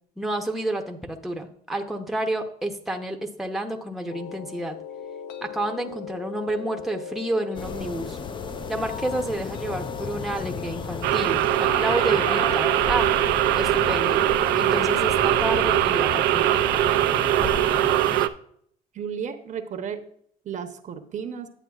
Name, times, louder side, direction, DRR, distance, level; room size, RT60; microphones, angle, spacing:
voice 1, 0.2-4.8 5.4-8.2 8.7-13.1 13.5-14.2 14.5-16.6, right 1 dB, ahead, 3 dB, 0.8 m, -30 dB
sound 1, 4.1-15.5, left 8 dB, 80° left, 0.5 m, -39 dB
sound 2, 7.5-18.3, left 4 dB, 30° left, 0.5 m, -33 dB
sound 3, 11.0-18.3, right 14 dB, 85° right, 0.4 m, -22 dB
voice 2, 18.9-20.0 20.4-21.5, right 7 dB, 45° right, 6 dB, 0.8 m, -33 dB
10.0 x 7.7 x 2.4 m, 0.65 s
cardioid pair, 110°, 17 cm